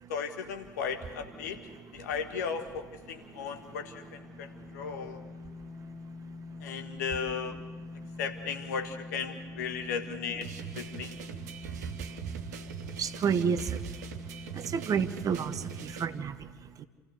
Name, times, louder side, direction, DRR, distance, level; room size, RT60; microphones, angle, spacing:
voice 1, 0.1-1.6 1.9-5.2 6.6-7.6 8.2-10.5 10.8-11.2, left 6 dB, 70° left, 6 dB, 1.7 m, -36 dB
sound 1, 0.7-16.2, left 2 dB, 5° left, 2.8 m, -46 dB
sound 2, 10.4-16.0, right 9 dB, 70° right, 1.0 m, -42 dB
voice 2, 13.0-13.8 14.7-15.5 15.8-16.3, right 7 dB, 40° right, 12 dB, 1.1 m, -29 dB
28.0 x 15.0 x 6.8 m, 1.4 s
figure-of-eight pair, 60°, 9 cm